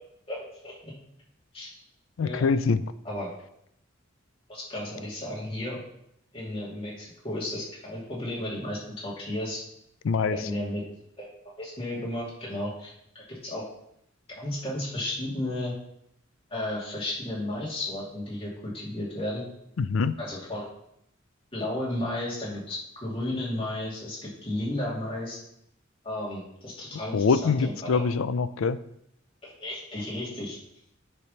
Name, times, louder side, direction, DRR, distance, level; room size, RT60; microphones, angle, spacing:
voice 1, 0.3-0.9 1.5-1.8 2.2-2.4 3.0-3.3 4.5-5.8 6.3-9.6 10.3-10.8 11.2-11.3 11.6-13.7 14.4-15.7 16.5-19.4 20.2-20.7 21.5-25.4 26.0-28.0 29.4-30.6, left 1 dB, 30° left, -6 dB, 2.5 m, -33 dB
voice 2, 2.2-2.8 10.0-10.4 19.8-20.2 27.1-28.8, left 5 dB, 80° left, 14 dB, 0.4 m, -24 dB
9.4 x 3.4 x 5.6 m, 0.74 s
head